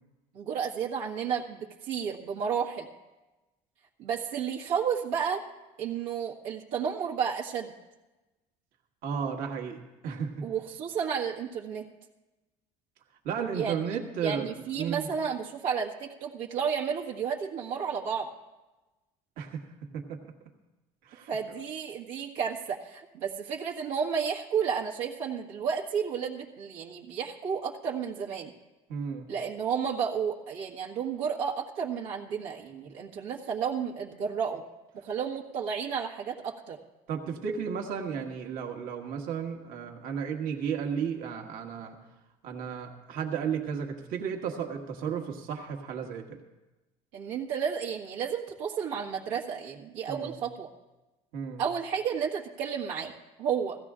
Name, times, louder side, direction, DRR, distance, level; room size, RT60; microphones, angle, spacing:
voice 1, 0.3-2.9 4.0-5.4 5.8-7.7 10.4-11.9 13.5-13.8 14.2-18.3 21.3-28.5 29.3-34.6 34.9-36.8 47.1-50.7 51.6-53.1 53.4-53.8, right 7 dB, 80° right, -3 dB, 1.6 m, -32 dB
voice 2, 9.0-10.4 13.2-14.5 14.8-15.0 19.4-19.6 19.9-20.2 21.0-21.3 28.9-29.3 37.1-42.0 42.4-46.4 50.1-50.4 51.3-51.6, right 7 dB, 65° right, 2 dB, 1.7 m, -33 dB
16.0 x 15.0 x 3.7 m, 1.1 s
supercardioid pair, 105°, 16 cm